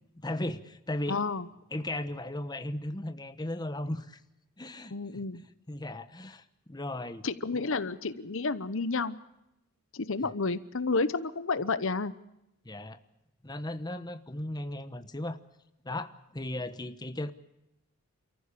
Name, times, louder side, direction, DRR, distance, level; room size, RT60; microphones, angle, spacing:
voice 1, 0.1-1.2 1.7-4.2 4.6-5.0 5.7-7.2 12.6-13.0 13.4-15.4 15.8-17.3, left 1 dB, 20° left, 10 dB, 1.1 m, -36 dB
voice 2, 1.1-1.5 4.9-5.4 7.2-9.2 9.9-12.1, left 3 dB, 60° left, 14 dB, 0.9 m, -30 dB
28.5 x 15.0 x 8.5 m, 0.87 s
head